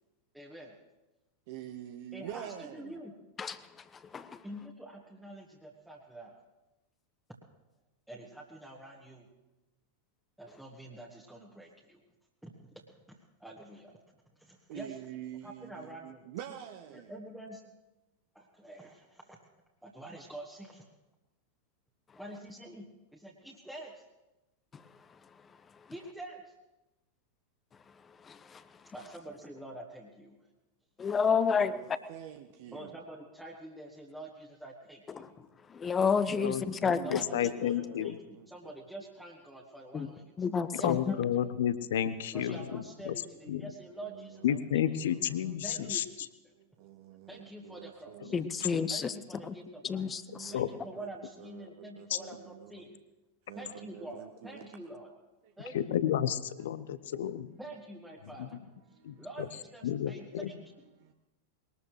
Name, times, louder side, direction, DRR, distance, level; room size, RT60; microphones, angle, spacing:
voice 1, 0.3-0.8 2.1-3.1 4.4-6.4 8.1-9.3 10.4-12.0 12.4-14.0 14.4-15.0 15.4-16.3 16.9-17.6 18.3-19.4 19.8-20.8 22.2-24.0 25.9-26.5 28.9-30.5 32.7-35.3 37.0-40.3 40.8-41.5 42.3-44.8 45.6-46.1 46.4-46.5 47.3-48.4 48.9-50.1 50.5-53.0 53.5-55.1 55.6-56.0 57.6-58.6 59.2-60.6, right 1 dB, 5° right, 1.6 m, -47 dB
voice 2, 1.5-3.0 14.7-17.1 31.5-33.0 36.3-38.7 42.4-42.6 44.0-45.9 46.5-49.2 50.3-52.9 53.5-54.7 55.4-55.5 58.9-59.3 60.9-61.1, right 11 dB, 50° right, 0.8 m, -47 dB
voice 3, 28.2-28.6 31.0-31.8 35.1-35.3 35.7-37.2 39.9-40.1 40.4-41.2 48.3-49.1 49.4-49.5 49.8-50.5, left 6 dB, 20° left, 0.8 m, -30 dB
voice 4, 37.1-38.2 40.7-43.1 43.5-43.7 44.4-46.0 48.2-48.4 50.5-50.7 52.1-52.2 55.7-57.5 58.4-58.5 59.0-59.5 59.8-60.5, left 10 dB, 60° left, 0.8 m, -31 dB
21.5 x 19.5 x 3.2 m
figure-of-eight pair, 90°, 0 cm